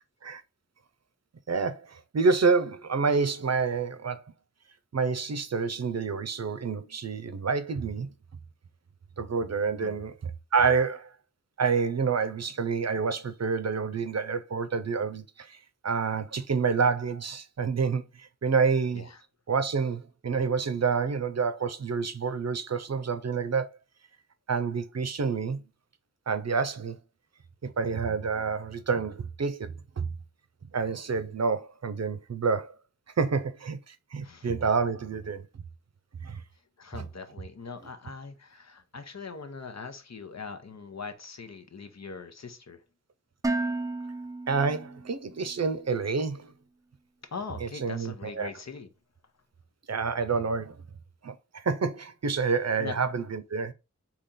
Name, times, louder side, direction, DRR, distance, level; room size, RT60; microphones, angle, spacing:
voice 1, 1.5-4.2 4.9-8.1 9.2-11.1 11.6-19.1 19.5-23.7 24.5-25.6 26.3-27.0 27.6-30.1 30.7-32.8 33.2-35.6 36.2-36.4 44.5-46.5 47.6-48.5 49.9-50.8 51.2-53.7, right 5 dB, 60° right, 0.6 m, -28 dB
voice 2, 36.8-42.8 47.2-48.9 52.8-53.0, left 4 dB, 65° left, 0.8 m, -41 dB
Dishes pots and pans, 43.4-45.5, right 2 dB, 10° right, 0.4 m, -33 dB
4.1 x 2.9 x 3.6 m
wide cardioid pair, 55°, 30 cm